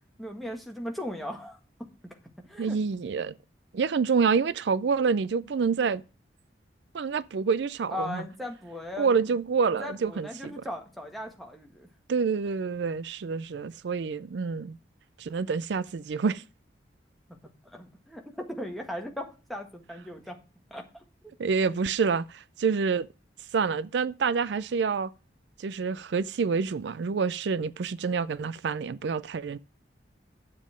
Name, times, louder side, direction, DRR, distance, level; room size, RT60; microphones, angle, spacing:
voice 1, 0.2-1.6 2.4-2.8 7.9-9.2 9.7-11.9 17.6-20.4 20.7-21.0, left 1 dB, ahead, 1.7 m, -38 dB
voice 2, 2.6-3.3 3.7-6.0 6.9-8.2 9.0-10.5 12.1-14.8 15.2-16.4 21.4-23.1 23.5-25.1 25.6-29.6, right 5 dB, 70° right, 0.4 m, -27 dB
9.7 x 7.3 x 5.0 m
head